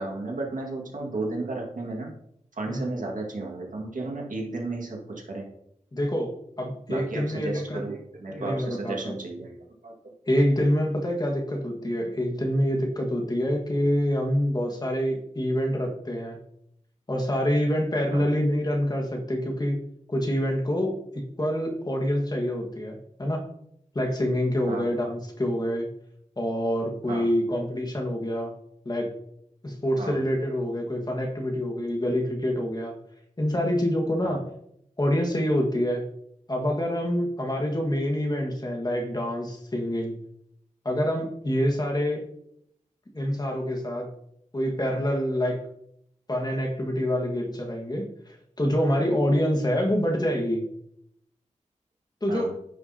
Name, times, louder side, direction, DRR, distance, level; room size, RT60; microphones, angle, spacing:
voice 1, 0.0-2.1 2.6-5.5 6.9-9.5 9.8-9.9 18.1-18.3 24.7-24.9 27.1-27.3 30.0-30.2 34.2-34.4 52.3-52.5, right 2 dB, 85° right, -1 dB, 1.9 m, -33 dB
voice 2, 5.9-6.3 6.6-7.8 8.4-9.2 10.3-16.4 17.1-19.8 20.1-20.9 21.4-23.4 23.9-25.9 26.4-28.5 28.8-29.1 29.6-32.9 33.4-34.4 35.0-36.0 36.5-40.1 40.8-42.2 43.1-44.1 44.5-45.6 46.3-50.6 52.2-52.5, equal, 30° left, 1 dB, 1.6 m, -26 dB
10.5 x 6.0 x 2.8 m, 0.73 s
wide cardioid pair, 100°, 13 cm